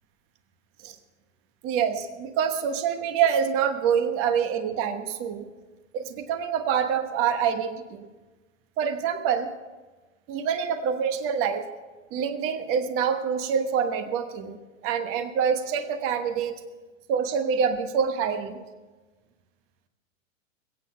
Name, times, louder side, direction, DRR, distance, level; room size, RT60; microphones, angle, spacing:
voice 1, 1.6-5.5 5.9-8.0 8.8-9.5 10.3-11.7 12.1-16.6 17.1-18.6, right 7 dB, 35° right, 9 dB, 1.2 m, -26 dB
21.0 x 9.0 x 5.7 m, 1.3 s
hypercardioid pair, 115°, 40 cm